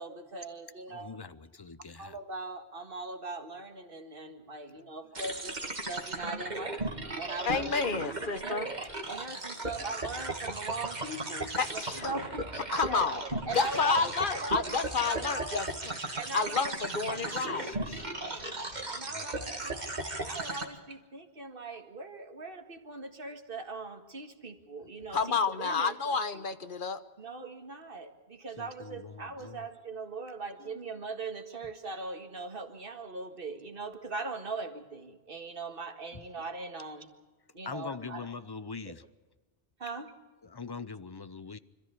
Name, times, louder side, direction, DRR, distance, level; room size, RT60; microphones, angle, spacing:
voice 1, 0.0-1.2 2.0-8.8 9.1-13.1 13.4-14.7 15.0-15.6 16.2-17.5 18.3-18.6 18.9-19.8 20.1-26.5 27.2-37.1 37.5-38.3 38.9-39.0 39.8-40.1, right 3 dB, 55° right, 5 dB, 2.0 m, -40 dB
voice 2, 0.9-2.2 16.5-16.8 17.1-18.4 18.7-20.0 28.6-29.6 30.6-30.8 36.1-36.2 37.6-39.0 40.4-41.6, left 5 dB, 25° left, 14 dB, 0.6 m, -44 dB
sound 1, 5.1-20.6, right 2 dB, 40° right, 2.2 m, -36 dB
voice 3, 7.5-8.7 11.6-12.1 12.7-13.1 13.5-15.9 16.3-17.7 25.1-27.0, left 5 dB, 50° left, 11 dB, 1.2 m, -30 dB
26.5 x 13.5 x 8.3 m, 1.2 s
omnidirectional pair, 1.1 m